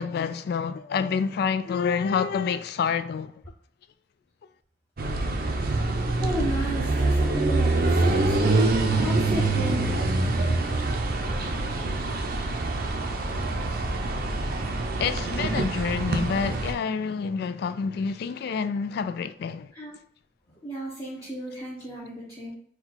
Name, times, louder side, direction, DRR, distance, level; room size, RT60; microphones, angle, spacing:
voice 1, 0.0-3.3 15.0-19.7, left 6 dB, 60° left, 0.3 m, -28 dB
sound 1, 5.0-16.7, right 2 dB, 55° right, 0.5 m, -25 dB
voice 2, 6.2-8.6 9.0-10.1 19.7-20.0 20.5-22.5, right 1 dB, 20° left, 0.8 m, -34 dB
4.5 x 2.3 x 3.9 m
head